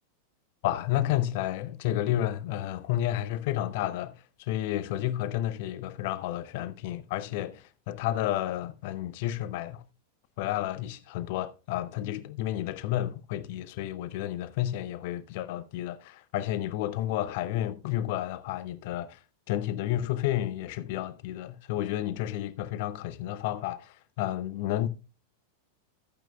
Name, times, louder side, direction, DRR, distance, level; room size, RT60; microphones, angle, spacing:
voice 1, 0.6-9.8 10.4-19.2 19.5-24.9, left 13 dB, 50° left, 0.6 m, -31 dB
13.5 x 8.9 x 2.2 m
figure-of-eight pair, 90°, 0 cm